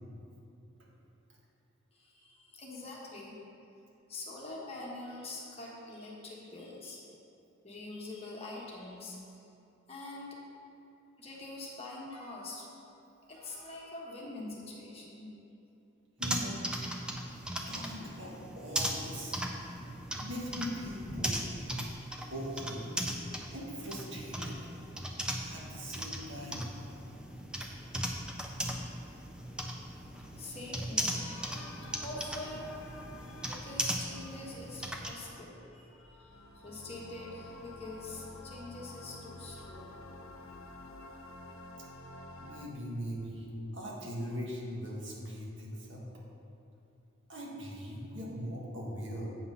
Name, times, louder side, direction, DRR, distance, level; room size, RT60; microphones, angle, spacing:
voice 1, 1.9-3.4 4.1-7.0 7.6-9.5 9.9-10.3 11.2-12.6 13.2-15.3 30.4-32.7 33.2-40.0, left 2 dB, 30° left, -4 dB, 1.3 m, -45 dB
sound 1, 16.2-35.1, equal, 5° right, 0.5 m, -38 dB
voice 2, 16.2-16.6 17.7-19.4 20.2-21.4 22.3-22.9 23.5-24.6 25.4-26.7 42.4-43.5 43.7-46.0 47.3-49.3, equal, 60° right, -4 dB, 1.8 m, -40 dB
sound 2, 31.5-42.7, left 2 dB, 80° left, 0.7 m, -50 dB
8.5 x 5.8 x 5.5 m, 2.8 s
head